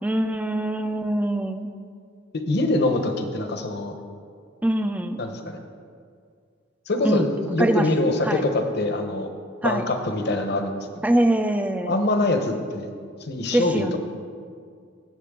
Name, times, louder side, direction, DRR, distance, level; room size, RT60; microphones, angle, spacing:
voice 1, 0.0-1.7 4.6-5.2 7.0-7.3 7.6-7.9 8.3-8.4 9.6-9.8 11.0-11.9 13.5-14.0, right 1 dB, 10° right, 8 dB, 0.4 m, -23 dB
voice 2, 2.3-3.9 5.2-5.6 6.9-9.3 9.6-11.2 11.8-12.9 13.2-14.0, left 2 dB, 55° left, 6 dB, 1.0 m, -24 dB
17.0 x 7.5 x 3.7 m, 2.2 s
head